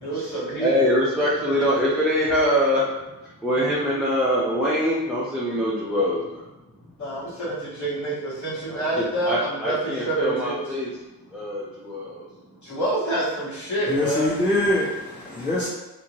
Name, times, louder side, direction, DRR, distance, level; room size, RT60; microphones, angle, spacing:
voice 1, 0.0-0.8 7.0-10.7 12.6-14.4 15.3-15.4, right 1 dB, 50° left, -9 dB, 1.3 m, -27 dB
voice 2, 0.6-2.8 3.4-6.4 8.7-10.9 11.3-12.3, equal, ahead, -8 dB, 0.5 m, -23 dB
voice 3, 13.9-15.7, left 1 dB, 30° left, -7 dB, 1.3 m, -23 dB
2.5 x 2.5 x 2.9 m, 1.0 s
cardioid pair, 105°, 36 cm